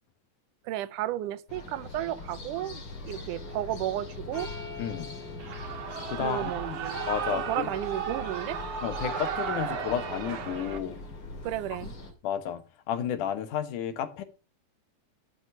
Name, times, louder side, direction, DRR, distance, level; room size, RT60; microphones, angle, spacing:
voice 1, 0.7-4.5 6.2-7.0 7.3-8.6 11.4-11.9, right 13 dB, 80° right, 2.3 m, -33 dB
sound 1, 1.5-12.1, left 3 dB, 45° left, 3.1 m, -42 dB
sound 2, 3.3-12.1, left 4 dB, 25° left, 3.4 m, -46 dB
voice 2, 4.8-5.1 6.1-6.8 7.1-7.7 8.8-11.0 12.2-12.6 12.9-14.2, left 9 dB, 80° left, 2.7 m, -32 dB
Shout / Cheering, 5.4-10.8, right 7 dB, 60° right, 2.5 m, -35 dB
12.5 x 6.3 x 5.7 m
omnidirectional pair, 3.6 m